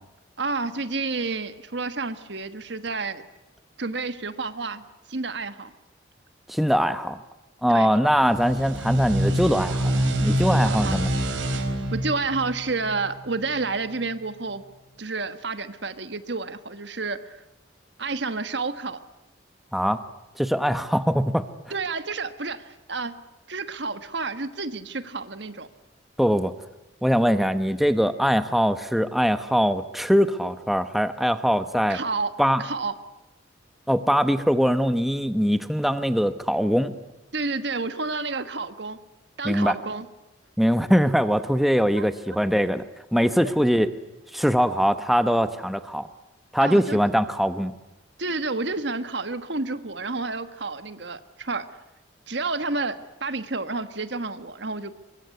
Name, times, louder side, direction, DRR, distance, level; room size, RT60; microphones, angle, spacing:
voice 1, 0.4-3.2 3.8-5.7 7.7-7.9 10.6-11.0 11.9-14.6 15.0-17.4 18.0-19.0 21.7-23.1 23.5-25.7 31.9-32.3 32.6-32.9 37.3-39.0 39.4-40.1 42.0-42.4 46.6-47.0 48.2-51.7 52.3-54.9, right 3 dB, 60° right, 11 dB, 1.5 m, -30 dB
voice 2, 6.5-7.2 7.6-11.1 19.7-20.0 20.4-21.5 26.2-26.5 27.0-32.0 32.4-32.6 33.9-36.9 39.4-39.7 40.6-42.8 43.1-43.9 44.3-46.1 46.5-47.7, equal, ahead, 10 dB, 0.9 m, -22 dB
sound 1, 8.2-13.5, right 1 dB, 85° right, 4.1 m, -26 dB
24.0 x 23.5 x 9.6 m, 0.97 s
head